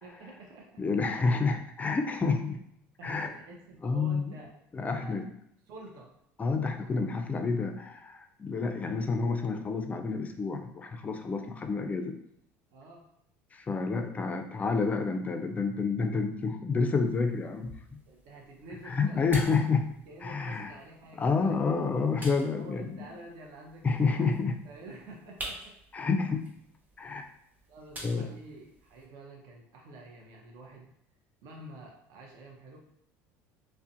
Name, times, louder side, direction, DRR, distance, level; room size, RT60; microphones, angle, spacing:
voice 1, 0.0-0.8 1.2-1.3 3.0-4.5 4.8-5.2 5.7-6.1 12.7-13.1 18.1-19.3 20.1-21.6 22.4-24.4 24.6-25.7 27.7-30.9 31.4-32.8, right 2 dB, 60° right, -1 dB, 0.6 m, -48 dB
voice 2, 0.8-2.6 3.0-3.3 3.8-4.3 4.7-5.3 6.4-12.2 13.5-18.0 18.9-19.9 20.2-20.7 21.2-23.1 23.8-24.6 25.9-26.5 27.0-27.3 28.0-28.3, left 4 dB, 20° left, 6 dB, 0.3 m, -29 dB
sound 1, 17.0-29.1, right 1 dB, 25° right, 0.7 m, -48 dB
2.4 x 2.1 x 2.6 m, 0.74 s
supercardioid pair, 100°, 7 cm